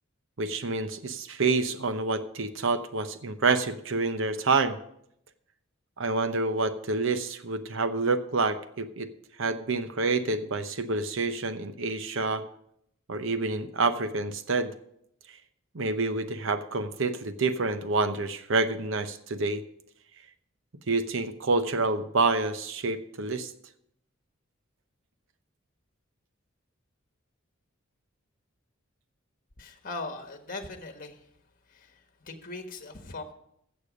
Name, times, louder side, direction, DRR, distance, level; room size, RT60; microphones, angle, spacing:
voice 1, 0.4-4.8 6.0-9.1 9.4-12.5 13.1-14.7 15.7-19.6 20.9-23.5, right 3 dB, 65° right, 10 dB, 0.9 m, -28 dB
voice 2, 29.6-31.3 31.7-33.3, left 3 dB, 45° left, 6 dB, 1.3 m, -40 dB
15.0 x 6.9 x 5.1 m, 0.74 s
head